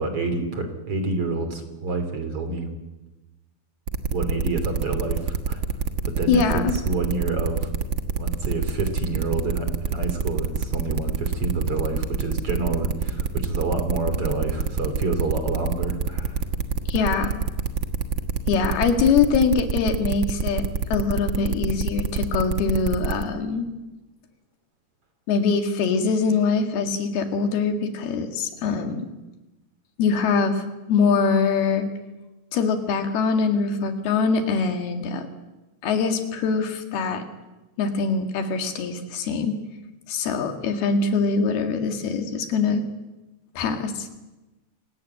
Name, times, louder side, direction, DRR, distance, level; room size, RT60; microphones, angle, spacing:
voice 1, 0.0-2.7 4.1-5.6 6.0-7.7 8.2-16.5, right 3 dB, 40° right, 7 dB, 3.7 m, -28 dB
sound 1, 3.9-23.2, right 6 dB, 75° right, 1.1 m, -26 dB
voice 2, 6.3-6.7 16.9-17.3 18.5-23.7 25.3-29.0 30.0-31.9 32.5-35.3 35.8-37.2 37.8-39.6 40.1-42.8 43.6-44.1, left 5 dB, 85° left, 6 dB, 4.0 m, -23 dB
27.5 x 17.5 x 9.0 m, 1.1 s
omnidirectional pair, 4.4 m